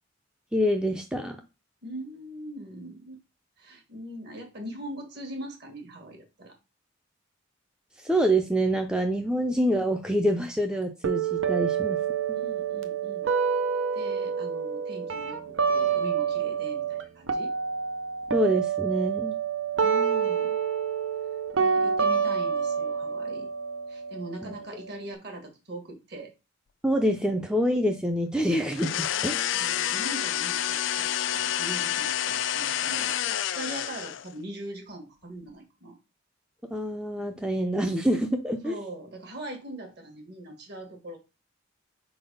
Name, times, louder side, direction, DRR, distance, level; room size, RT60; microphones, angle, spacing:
voice 1, 0.5-1.4 8.0-12.0 18.3-19.4 24.4-24.5 26.8-29.4 36.7-38.8, equal, 5° right, 4 dB, 0.5 m, -26 dB
voice 2, 1.8-3.2 3.6-6.6 12.4-13.3 13.9-17.5 19.8-20.6 21.6-23.5 23.9-26.3 29.4-36.0 38.6-41.2, right 1 dB, 55° right, 4 dB, 1.6 m, -41 dB
sound 1, 11.0-17.0 17.3-25.1, right 6 dB, 75° right, 0.7 m, -28 dB
sound 2, 28.7-34.3, left 11 dB, 70° left, 0.4 m, -28 dB
4.5 x 4.0 x 5.3 m, 0.28 s
head